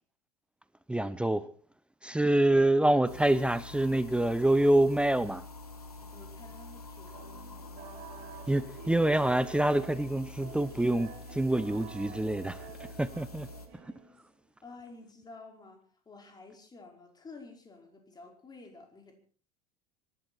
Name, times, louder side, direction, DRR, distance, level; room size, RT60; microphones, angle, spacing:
voice 1, 0.9-1.5 2.0-5.4 8.5-12.6 13.0-13.5, right 1 dB, 5° right, 0.8 m, -26 dB
sound 1, 3.1-13.7, left 2 dB, 85° left, 2.0 m, -46 dB
voice 2, 6.0-7.3 14.6-19.2, left 3 dB, 20° left, 5.0 m, -51 dB
sound 2, 7.1-14.5, right 7 dB, 50° right, 4.5 m, -49 dB
25.5 x 12.5 x 4.3 m
figure-of-eight pair, 75°, 19 cm